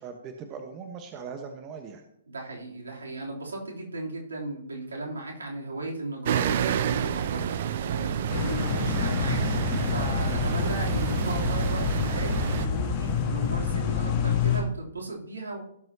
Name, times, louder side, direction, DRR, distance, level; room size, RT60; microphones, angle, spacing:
voice 1, 0.0-2.0, right 6 dB, 30° right, 5 dB, 1.2 m, -40 dB
voice 2, 2.3-15.6, right 2 dB, 75° right, -2 dB, 3.3 m, -36 dB
sound 1, 6.3-12.7, right 9 dB, 50° right, 0.6 m, -29 dB
sound 2, 8.3-14.6, left 6 dB, 40° left, 2.4 m, -27 dB
17.5 x 7.6 x 2.9 m, 0.76 s
figure-of-eight pair, 120°, 0 cm